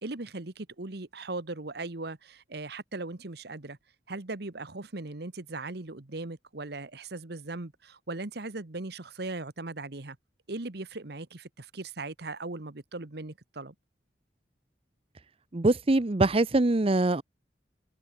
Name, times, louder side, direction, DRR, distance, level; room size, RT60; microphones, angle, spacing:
voice 1, 0.0-3.8 4.1-10.2 10.5-13.7, right 2 dB, 65° right, 1.4 m, -38 dB
voice 2, 15.5-17.2, right 2 dB, 35° right, 0.7 m, -23 dB
head